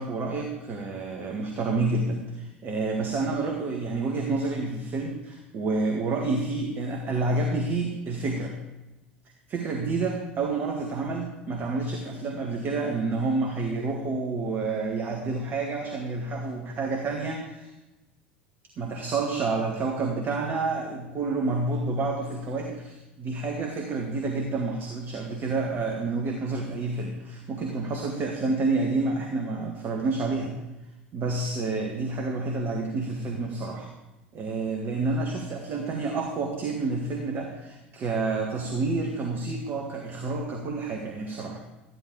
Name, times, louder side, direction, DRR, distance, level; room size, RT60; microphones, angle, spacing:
voice 1, 0.0-8.5 9.5-17.7 18.8-30.6 31.1-33.9 34.3-41.6, right 3 dB, 35° right, 1 dB, 1.9 m, -29 dB
14.0 x 11.0 x 4.9 m, 1.0 s
figure-of-eight pair, 70°, 6 cm